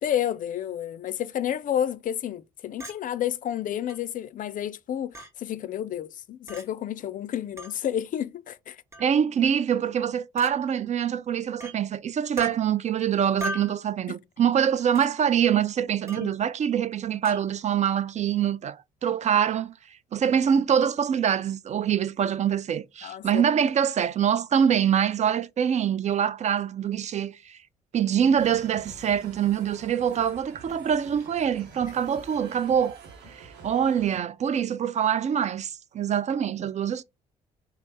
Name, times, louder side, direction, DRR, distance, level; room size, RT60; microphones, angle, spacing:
voice 1, 0.0-8.8 16.2-16.3 23.0-23.4 31.8-31.9, left 10 dB, 50° left, 0.4 m, -30 dB
Chink clink, 2.8-3.0 3.9-4.0 5.1-5.3 6.5-6.6 7.6-7.7 8.9-9.1 10.4-10.5 11.6-11.8 12.4-12.5 13.4-13.8 15.0-15.1 16.1-16.3 17.3-17.4, equal, 15° right, 1.3 m, -37 dB
voice 2, 9.0-19.7 20.1-27.6 27.9-33.0 33.3-37.0, right 8 dB, 40° right, 0.4 m, -24 dB
sound 1, 28.4-34.2, right 4 dB, 65° right, 0.8 m, -47 dB
3.1 x 2.0 x 4.0 m
hypercardioid pair, 50°, 18 cm